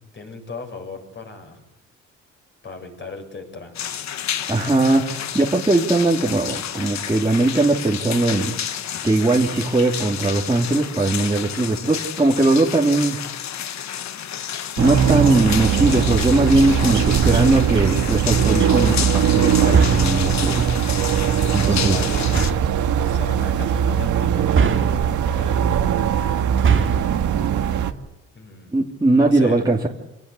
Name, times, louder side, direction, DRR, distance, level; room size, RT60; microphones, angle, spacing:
voice 1, 0.1-1.6 2.6-3.9 9.0-9.1 21.3-22.3 22.9-25.7 26.9-27.5 28.3-28.8 29.1-29.6, left 3 dB, 40° left, 4 dB, 7.4 m, -37 dB
sound 1, 3.7-22.5, left 9 dB, 65° left, 1.3 m, -30 dB
voice 2, 4.5-8.5 9.0-13.2 14.8-20.7 21.5-22.0 28.7-29.9, right 2 dB, 15° right, -3 dB, 2.7 m, -19 dB
sound 2, 14.8-27.9, right 8 dB, 75° right, 1.8 m, -20 dB
sound 3, 17.1-17.7 19.7-20.3 22.2-22.8 24.5-25.3 26.5-27.2, right 5 dB, 40° right, 2.3 m, -22 dB
26.0 x 18.0 x 8.4 m, 0.92 s
cardioid pair, 90°, 30 cm